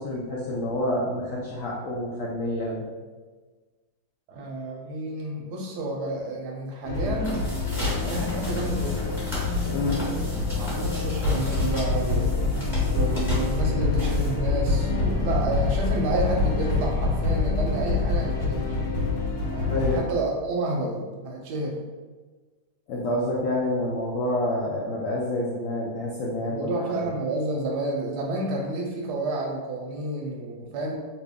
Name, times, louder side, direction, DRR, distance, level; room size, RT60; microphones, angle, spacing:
voice 1, 0.0-2.9 9.7-10.0 19.7-20.0 22.9-27.1, left 1 dB, 85° left, -4 dB, 0.7 m, -28 dB
voice 2, 4.3-7.4 8.0-9.2 9.8-10.2 10.5-12.3 12.9-18.7 19.5-21.8 26.5-31.0, right 2 dB, 75° right, 0 dB, 1.0 m, -30 dB
sound 1, 6.8-20.0, left 3 dB, 65° left, 1.0 m, -26 dB
sound 2, 7.1-14.6, equal, ahead, 1.0 m, -37 dB
2.9 x 2.8 x 3.4 m, 1.4 s
omnidirectional pair, 2.0 m